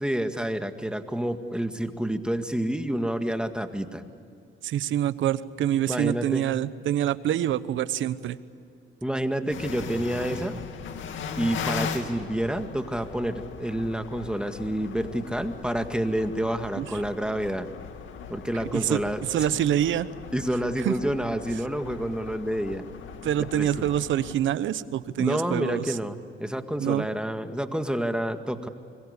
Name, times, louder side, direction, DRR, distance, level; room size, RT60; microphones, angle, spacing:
voice 1, 0.0-4.0 5.9-6.5 9.0-10.6 11.3-17.7 18.3-19.5 20.3-22.8 23.5-23.9 25.2-28.7, right 1 dB, 5° right, 7 dB, 1.9 m, -29 dB
voice 2, 4.6-8.4 16.8-16.9 18.7-19.0 19.3-20.1 20.8-20.9 23.2-26.0 26.8-27.1, right 11 dB, 75° right, 15 dB, 1.1 m, -26 dB
sound 1, 9.5-24.3, left 6 dB, 75° left, 2.3 m, -38 dB
25.5 x 22.5 x 8.4 m, 2.6 s
cardioid pair, 90°, 20 cm